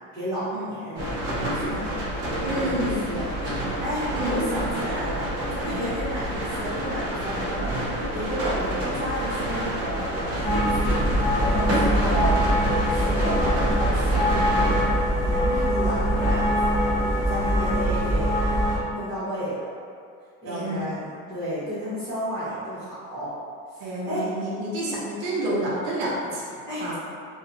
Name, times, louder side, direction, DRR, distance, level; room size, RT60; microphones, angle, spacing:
voice 1, 0.1-1.1 1.5-2.1 2.6-3.3 3.8-5.2 5.5-7.7 8.1-10.0 10.4-11.0 11.5-12.4 12.9-16.9 17.3-18.4 18.9-19.7 20.4-23.3 23.7-24.2 26.7-26.9, equal, 10° right, -19 dB, 1.1 m, -32 dB
sound 1, 0.9-14.8, right 1 dB, 45° right, 0.9 m, -29 dB
voice 2, 2.4-3.2 4.1-4.5 5.6-5.9 11.7-11.9 20.5-20.8 23.8-26.9, right 1 dB, 75° right, -5 dB, 0.7 m, -29 dB
sound 2, 10.4-18.8, equal, 20° left, 0.8 m, -23 dB
2.8 x 2.3 x 2.5 m, 2.3 s
cardioid pair, 160°, 33 cm